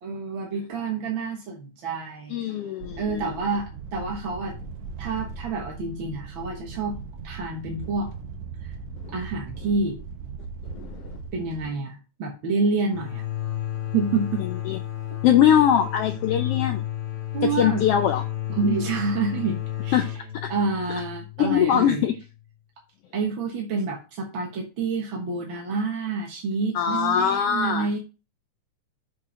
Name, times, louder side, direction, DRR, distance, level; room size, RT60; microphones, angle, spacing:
voice 1, 0.0-2.4 3.0-4.6 5.0-7.0 7.2-8.1 9.1-10.0 11.3-13.2 13.9-14.5 17.3-17.9 18.6-20.1 20.5-22.0 23.1-28.0, right 4 dB, 50° right, 0 dB, 1.8 m, -28 dB
voice 2, 2.3-3.3 9.0-9.1 10.7-11.2 14.7-14.8 15.2-16.8 17.4-18.2 19.9-20.1 21.4-22.1 26.7-28.0, left 9 dB, 80° left, 6 dB, 1.4 m, -22 dB
sound 1, 2.8-11.7, right 5 dB, 75° right, 2.2 m, -38 dB
sound 2, 12.9-22.4, left 13 dB, 50° left, 2.1 m, -32 dB
7.4 x 4.6 x 4.9 m, 0.31 s
omnidirectional pair, 3.4 m